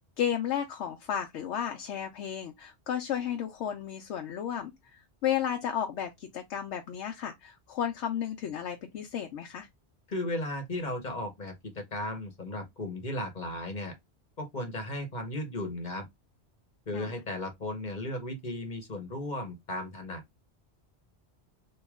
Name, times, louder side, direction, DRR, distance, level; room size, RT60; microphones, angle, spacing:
voice 1, 0.2-9.7 16.9-17.1, left 9 dB, 85° left, 0.9 m, -33 dB
voice 2, 10.1-13.9 14.4-16.1 16.9-20.2, left 1 dB, 45° left, 1.0 m, -35 dB
3.1 x 2.8 x 3.4 m
omnidirectional pair, 1.2 m